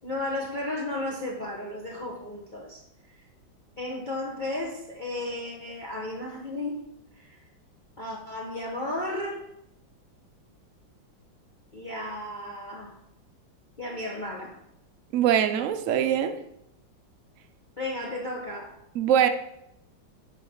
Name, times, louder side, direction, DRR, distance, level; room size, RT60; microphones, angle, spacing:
voice 1, 0.0-2.8 3.1-3.2 3.8-6.8 7.1-7.4 8.0-9.4 11.7-13.0 13.8-14.6 17.8-18.7, left 1 dB, 30° left, -2 dB, 1.0 m, -34 dB
voice 2, 15.1-16.4 18.9-19.3, right 9 dB, 85° right, 8 dB, 0.6 m, -22 dB
9.8 x 3.8 x 5.6 m, 0.79 s
omnidirectional pair, 2.1 m